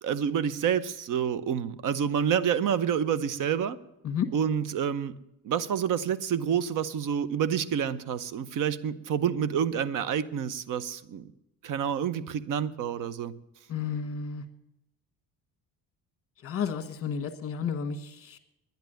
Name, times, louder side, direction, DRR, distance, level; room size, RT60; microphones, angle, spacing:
voice 1, 0.0-3.8 4.3-5.2 5.4-11.3 11.6-13.3, right 8 dB, 60° right, 17 dB, 0.8 m, -28 dB
voice 2, 13.7-14.4 16.4-18.4, left 7 dB, 40° left, 8 dB, 1.4 m, -32 dB
10.5 x 10.5 x 9.0 m, 0.87 s
cardioid pair, 175°, 35 cm